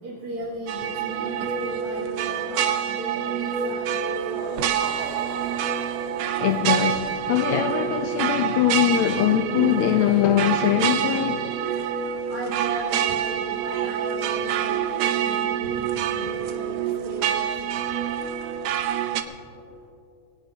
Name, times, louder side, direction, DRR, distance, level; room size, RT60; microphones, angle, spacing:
voice 1, 0.0-4.7 12.3-17.8 18.1-18.3, right 1 dB, 45° right, 3.0 m, -36 dB
sound 1, 0.7-19.2, right 9 dB, 80° right, 1.5 m, -27 dB
sound 2, 4.2-8.8, right 5 dB, 60° right, 1.7 m, -41 dB
voice 2, 6.4-11.5, left 11 dB, 85° left, 1.6 m, -22 dB
21.5 x 18.0 x 2.8 m
omnidirectional pair, 3.7 m